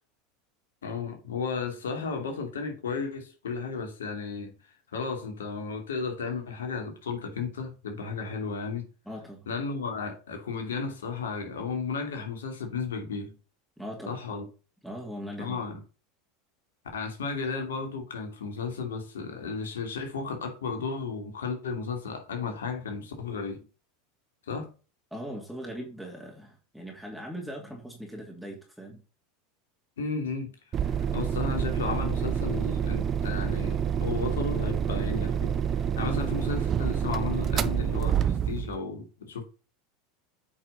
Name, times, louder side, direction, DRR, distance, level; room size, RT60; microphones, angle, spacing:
voice 1, 0.8-4.5 4.9-8.9 9.5-13.3 14.1-14.4 15.4-15.8 16.9-23.6 24.5-24.7 30.0-30.5 30.8-35.5 36.0-39.4, left 4 dB, 85° left, 2.8 m, -34 dB
voice 2, 9.1-9.5 13.8-14.2 14.8-15.7 25.1-29.0, equal, ahead, 2.7 m, -40 dB
sound 1, 30.7-38.8, right 8 dB, 35° right, 0.7 m, -28 dB
8.5 x 5.7 x 4.1 m
hypercardioid pair, 90°, 0 cm